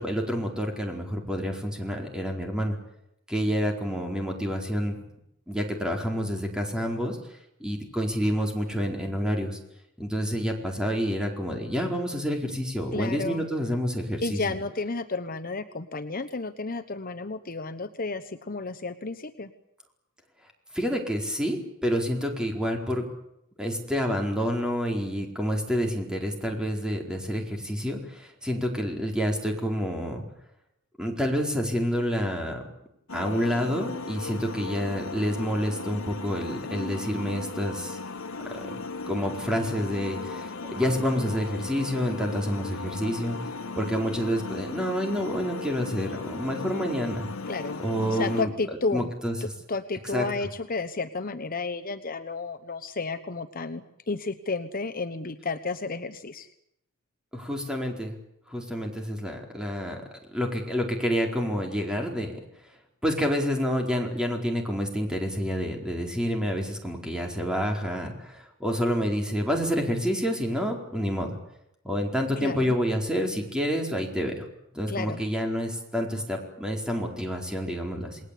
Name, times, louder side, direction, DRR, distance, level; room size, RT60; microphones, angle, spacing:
voice 1, 0.0-2.8 3.3-5.0 5.5-7.2 7.6-9.6 10.0-14.4 20.7-23.0 23.6-30.2 31.0-32.6 33.1-38.0 38.5-38.8 39.1-43.4 43.8-47.3 47.8-48.5 48.9-49.3 50.1-50.2 57.3-58.2 58.5-60.0 60.3-62.4 63.0-71.4 71.8-74.4 74.7-78.2, equal, 5° right, 2 dB, 4.5 m, -28 dB
voice 2, 12.9-13.4 14.2-19.5 47.5-49.1 49.4-56.5 72.4-72.7 74.9-75.2, left 3 dB, 45° left, 9 dB, 1.0 m, -32 dB
sound 1, 33.1-48.4, left 3 dB, 85° left, 1.4 m, -36 dB
28.5 x 20.5 x 8.5 m, 0.81 s
head